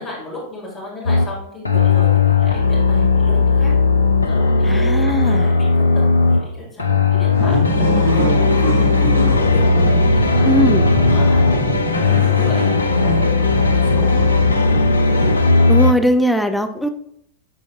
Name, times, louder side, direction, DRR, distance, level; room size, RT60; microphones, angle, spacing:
voice 1, 0.0-3.7 4.3-9.6 10.1-10.5 11.0-14.4, left 1 dB, 25° left, -5 dB, 2.6 m, -33 dB
sound 1, 1.1-1.3 1.7-6.5 6.8-15.9, left 4 dB, 80° left, 0.4 m, -16 dB
voice 2, 4.6-5.5 10.5-10.8 15.7-16.9, equal, ahead, 6 dB, 0.5 m, -19 dB
sound 2, 7.3-15.8, equal, 80° right, 1.6 m, -23 dB
9.8 x 3.8 x 2.5 m, 0.71 s
figure-of-eight pair, 90°, 0 cm